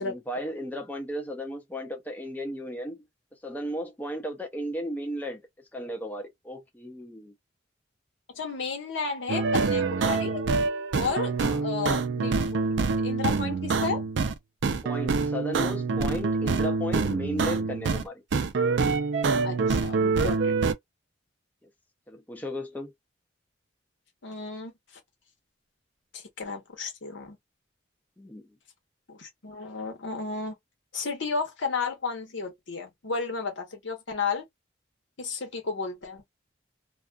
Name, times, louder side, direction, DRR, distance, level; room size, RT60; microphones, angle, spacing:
voice 1, 0.0-3.0 3.4-5.4 5.7-7.3 11.4-11.6 14.8-18.2 22.1-22.9 28.2-28.5, equal, 10° left, 0.5 m, -35 dB
voice 2, 8.3-10.4 10.9-11.3 11.6-12.7 13.0-14.0 19.4-20.5 24.2-24.7 26.1-27.4 29.1-30.5 30.9-34.4 35.2-36.2, left 4 dB, 80° left, 1.0 m, -33 dB
sound 1, 9.3-14.4 14.6-18.0 18.3-20.7, right 4 dB, 70° right, 0.4 m, -26 dB
2.4 x 2.3 x 2.3 m
head